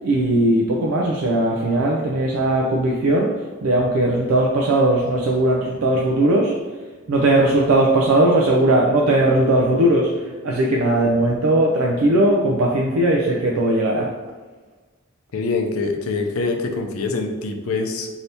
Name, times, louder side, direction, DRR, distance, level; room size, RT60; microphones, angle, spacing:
voice 1, 0.0-3.3 3.6-6.5 7.1-14.1, right 1 dB, 80° right, -2 dB, 0.4 m, -18 dB
voice 2, 15.3-18.1, left 3 dB, 90° left, 3 dB, 0.5 m, -25 dB
2.7 x 2.7 x 3.3 m, 1.3 s
head